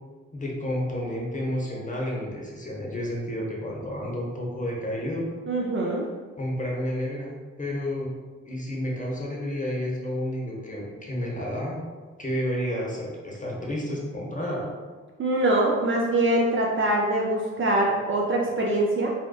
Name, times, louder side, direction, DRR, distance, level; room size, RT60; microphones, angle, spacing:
voice 1, 0.3-5.3 6.4-8.1 8.5-11.8 12.2-14.7, equal, 20° left, -3 dB, 0.8 m, -30 dB
voice 2, 5.5-6.1 15.2-19.1, right 1 dB, 35° right, -2 dB, 0.4 m, -23 dB
2.6 x 2.2 x 2.3 m, 1.4 s
hypercardioid pair, 40°, 35 cm